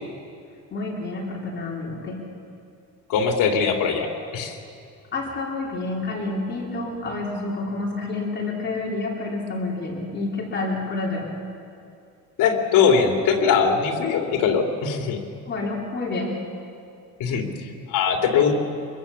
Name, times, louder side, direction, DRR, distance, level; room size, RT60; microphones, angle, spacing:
voice 1, 0.7-2.2 5.1-11.3 15.5-16.4, left 2 dB, 35° left, -2 dB, 3.6 m, -29 dB
voice 2, 3.1-4.6 12.4-15.2 17.2-18.6, left 6 dB, 70° left, 2 dB, 3.1 m, -21 dB
25.0 x 21.5 x 7.2 m, 2.4 s
cardioid pair, 160°, 33 cm